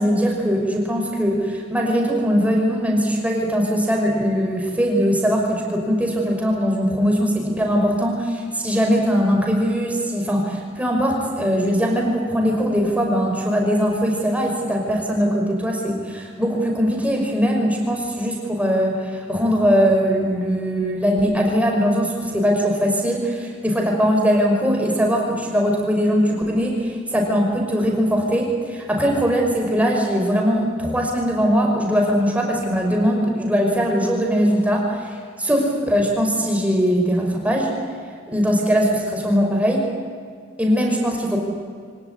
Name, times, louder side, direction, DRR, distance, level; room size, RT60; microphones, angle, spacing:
voice 1, 0.0-37.8 38.3-39.9 40.6-41.4, equal, 10° right, 0 dB, 5.6 m, -20 dB
25.0 x 18.0 x 9.9 m, 2.1 s
head